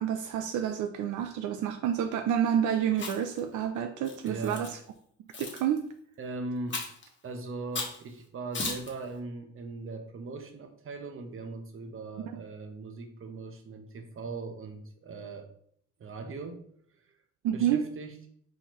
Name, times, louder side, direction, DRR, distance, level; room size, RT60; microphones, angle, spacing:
voice 1, 0.0-4.8 5.4-5.8 17.4-17.8, right 9 dB, 80° right, 7 dB, 0.5 m, -29 dB
Chewing mastication, 2.9-3.4 4.0-4.7 5.3-5.6 6.7-7.0 7.7-8.0 8.5-8.9, left 3 dB, 40° left, 1.2 m, -35 dB
voice 2, 4.2-4.6 6.2-6.9 7.2-15.5 16.0-16.6 17.0-17.1 17.5-18.2, right 3 dB, 45° right, 5 dB, 0.9 m, -39 dB
4.3 x 3.7 x 3.1 m, 0.63 s
cardioid pair, 90°, 30 cm